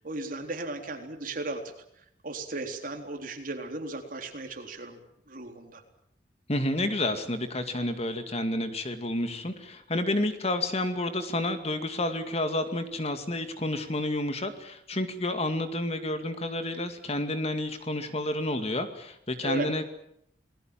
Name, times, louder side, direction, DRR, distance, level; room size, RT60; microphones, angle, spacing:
voice 1, 0.0-1.6 2.2-5.0 5.3-5.8 19.4-19.7, right 2 dB, 50° right, 4 dB, 3.8 m, -36 dB
voice 2, 6.5-20.0, left 1 dB, 35° left, 8 dB, 2.3 m, -30 dB
28.0 x 20.0 x 7.5 m, 0.74 s
head